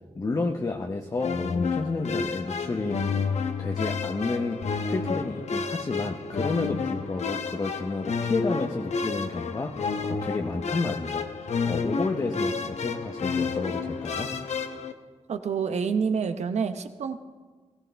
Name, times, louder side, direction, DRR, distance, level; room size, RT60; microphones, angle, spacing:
voice 1, 0.2-3.1 3.6-11.3 11.7-14.3, left 3 dB, 30° left, 3 dB, 0.8 m, -31 dB
sound 1, 1.2-14.9, left 5 dB, 75° left, 0.9 m, -30 dB
voice 2, 15.3-17.2, right 6 dB, 75° right, 9 dB, 0.9 m, -27 dB
18.5 x 16.0 x 3.4 m, 1.4 s
wide cardioid pair, 115°, 12 cm